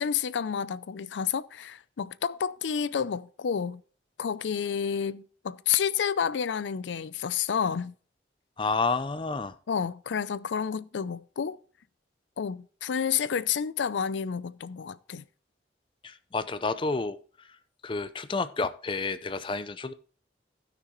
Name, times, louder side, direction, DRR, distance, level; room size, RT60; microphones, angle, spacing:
voice 1, 0.0-3.8 4.2-7.9 9.7-11.6 12.4-15.2, left 7 dB, 90° left, 0.4 m, -30 dB
voice 2, 8.6-9.5 16.0-17.2 17.8-19.9, left 3 dB, 30° left, 0.4 m, -30 dB
16.0 x 6.1 x 3.1 m
head